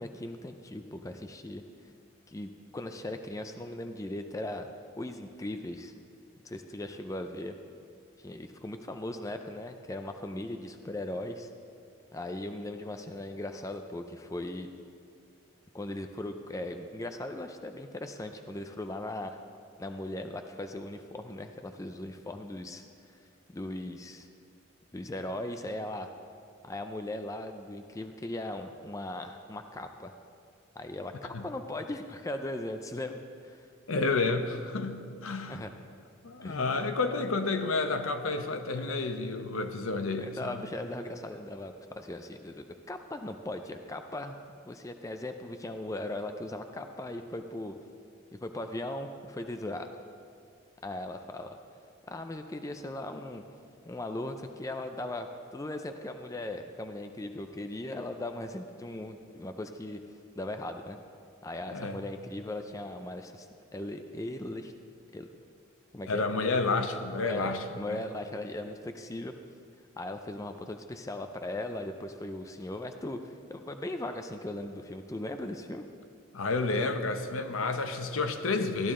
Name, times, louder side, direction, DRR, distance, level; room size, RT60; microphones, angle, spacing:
voice 1, 0.0-1.6 2.3-4.7 5.0-5.9 6.4-7.6 8.2-11.5 12.1-14.7 15.7-19.4 19.8-22.8 23.5-24.3 24.9-26.1 26.6-30.1 30.8-31.1 31.4-33.6 35.5-35.7 36.4-36.7 38.8-38.9 40.2-44.4 44.7-47.7 48.4-50.0 50.8-51.6 52.0-53.4 53.9-60.0 60.4-61.0 61.4-63.5 63.7-64.7 65.1-65.3 65.9-66.2 67.3-69.3 70.0-75.9, left 1 dB, 15° left, 6 dB, 0.4 m, -38 dB
voice 2, 33.9-35.6 36.2-40.6 61.7-62.0 66.1-68.0 76.3-78.9, left 3 dB, 85° left, 8 dB, 0.8 m, -30 dB
14.0 x 10.5 x 3.7 m, 2.3 s
head